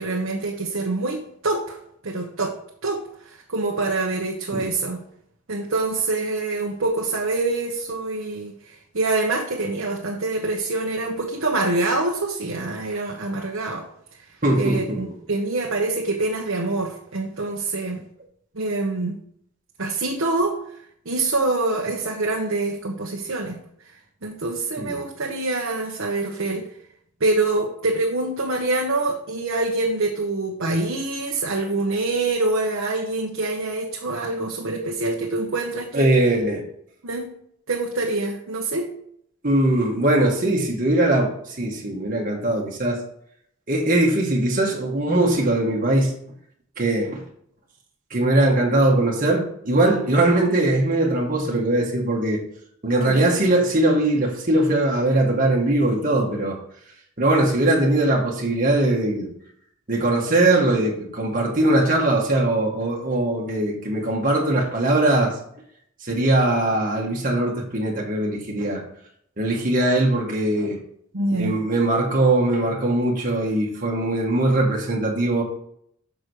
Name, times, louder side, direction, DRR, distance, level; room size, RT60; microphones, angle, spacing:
voice 1, 0.0-1.8 2.0-2.5 2.8-5.0 5.5-8.5 8.9-13.8 14.6-18.0 18.5-19.2 19.8-20.6 21.0-23.6 24.2-26.7 27.2-36.1 37.0-37.3 37.7-38.9 53.0-53.4 71.1-71.6, right 2 dB, 85° right, -1 dB, 1.1 m, -25 dB
voice 2, 14.4-15.0 24.8-24.9 35.9-36.6 39.4-43.0 43.7-46.2 46.8-47.2 48.1-52.4 52.8-56.6 57.2-59.3 59.9-65.4 66.0-68.8 69.4-70.8 71.3-75.4, right 1 dB, 40° right, -2 dB, 1.7 m, -21 dB
6.1 x 5.1 x 6.3 m, 0.69 s
head